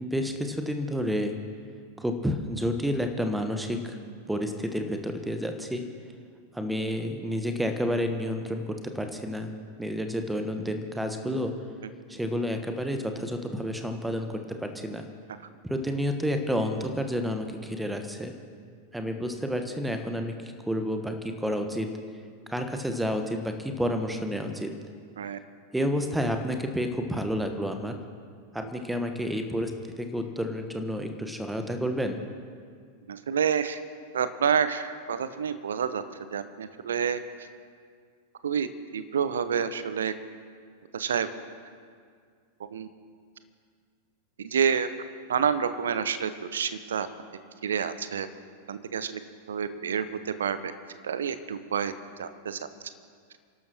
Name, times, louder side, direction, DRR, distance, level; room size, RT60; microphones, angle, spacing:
voice 1, 0.0-1.4 2.0-4.0 4.3-5.8 6.5-9.5 9.8-11.5 12.1-15.1 15.6-18.3 18.9-20.3 20.7-21.9 22.5-24.7 25.7-28.0 28.5-29.7 30.0-32.2, equal, 5° right, 6 dB, 1.3 m, -30 dB
voice 2, 33.1-33.8 34.1-36.0 36.3-37.2 38.4-40.1 40.9-41.3 42.7-42.9 44.4-44.9 45.3-47.1 47.6-48.3 48.7-49.1 49.5-50.7 51.0-51.9 52.2-52.6, right 7 dB, 65° right, 12 dB, 0.8 m, -28 dB
29.0 x 12.0 x 3.0 m, 2.1 s
figure-of-eight pair, 90°, 0 cm